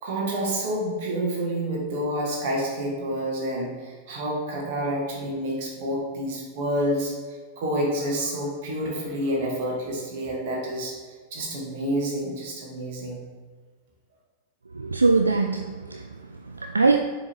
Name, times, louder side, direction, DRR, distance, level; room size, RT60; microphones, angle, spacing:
voice 1, 0.0-7.1 7.6-11.0 11.3-13.2, right 1 dB, 50° right, -2 dB, 2.0 m, -28 dB
voice 2, 14.7-17.0, right 3 dB, 80° right, 5 dB, 0.3 m, -23 dB
7.0 x 4.0 x 4.5 m, 1.5 s
figure-of-eight pair, 90°, 0 cm